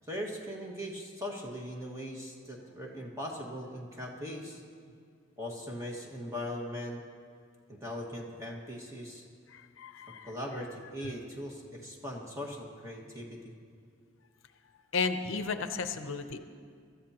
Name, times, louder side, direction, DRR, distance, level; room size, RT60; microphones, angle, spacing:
voice 1, 0.1-4.6 5.4-7.0 7.7-9.2 10.2-13.5, equal, 15° right, -1 dB, 1.7 m, -40 dB
voice 2, 9.5-10.3 11.0-11.1 14.9-16.4, left 4 dB, 70° left, 8 dB, 0.7 m, -34 dB
23.5 x 13.5 x 2.9 m, 2.2 s
head